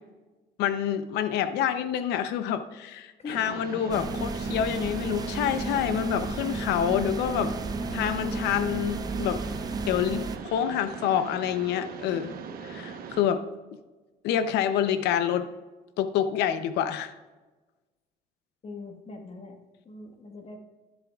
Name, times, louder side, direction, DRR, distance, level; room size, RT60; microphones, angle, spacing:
voice 1, 0.6-7.5 7.9-9.4 9.9-12.3 12.6-13.4 14.2-15.5 16.0-17.1, left 9 dB, 85° left, 11 dB, 0.7 m, -27 dB
voice 2, 3.2-4.0 18.6-19.6 19.8-20.6, left 3 dB, 35° left, 4 dB, 1.4 m, -42 dB
Mechanisms, 3.3-13.2, right 6 dB, 60° right, 1.0 m, -40 dB
sound 1, 3.9-10.4, right 3 dB, 25° right, 0.6 m, -33 dB
11.0 x 10.5 x 2.4 m, 1.2 s
cardioid pair, 110°, 17 cm